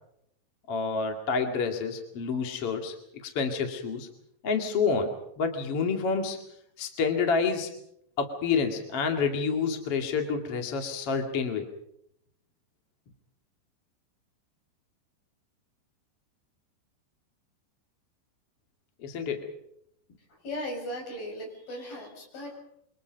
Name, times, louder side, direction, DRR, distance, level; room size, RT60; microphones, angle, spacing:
voice 1, 0.7-2.9 3.2-4.1 4.4-6.4 6.8-7.7 8.2-11.7 19.0-19.5, left 5 dB, 40° left, 4 dB, 2.6 m, -28 dB
voice 2, 20.4-22.6, left 1 dB, 55° left, 1 dB, 8.4 m, -37 dB
27.5 x 25.0 x 5.3 m, 0.74 s
omnidirectional pair, 4.9 m